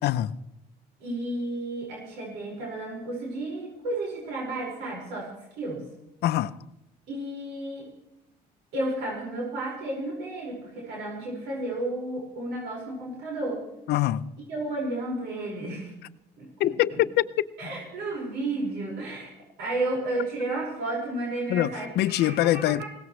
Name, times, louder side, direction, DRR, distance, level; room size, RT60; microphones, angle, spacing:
voice 1, 0.0-0.3 6.2-6.5 13.9-14.2 16.6-17.2 21.5-22.8, left 14 dB, 75° left, 0.7 m, -24 dB
voice 2, 1.0-5.3 5.6-5.9 7.1-7.9 8.7-13.6 14.5-15.9 16.4-17.0 17.6-19.3 19.6-22.9, right 2 dB, 85° right, 5.4 m, -32 dB
20.0 x 17.5 x 3.2 m
cardioid pair, 110°, 17 cm